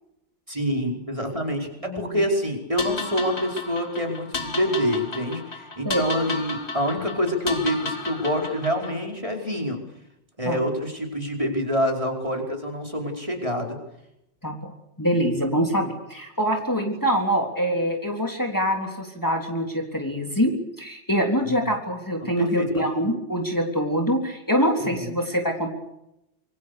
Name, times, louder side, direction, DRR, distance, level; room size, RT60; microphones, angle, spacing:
voice 1, 0.5-9.8 10.4-13.8 21.6-21.7 22.4-23.0 24.8-25.2, equal, 30° right, 2 dB, 4.9 m, -26 dB
voice 2, 1.8-2.2 5.9-6.1 10.5-10.6 14.4-14.7 15.0-25.7, equal, 15° left, 2 dB, 3.6 m, -24 dB
metal bowl, 2.8-9.0, left 3 dB, 65° left, 3.2 m, -33 dB
27.0 x 23.5 x 6.8 m, 0.85 s
omnidirectional pair, 1.2 m